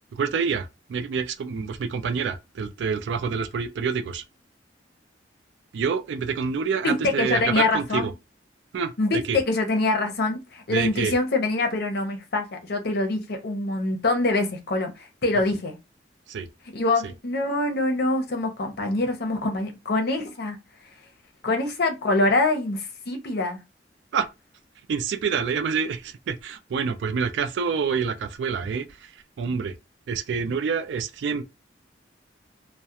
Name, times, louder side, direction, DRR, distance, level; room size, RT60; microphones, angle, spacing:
voice 1, 0.1-4.2 5.7-8.1 8.7-8.9 9.3-9.4 10.7-11.1 16.3-16.5 24.1-24.3 24.9-29.1 29.4-29.7 30.1-31.4, right 6 dB, 80° right, 0.3 m, -27 dB
voice 2, 6.8-8.1 9.0-15.8 16.7-20.6 21.4-23.6, left 2 dB, 60° left, 0.7 m, -25 dB
2.3 x 2.1 x 2.7 m
head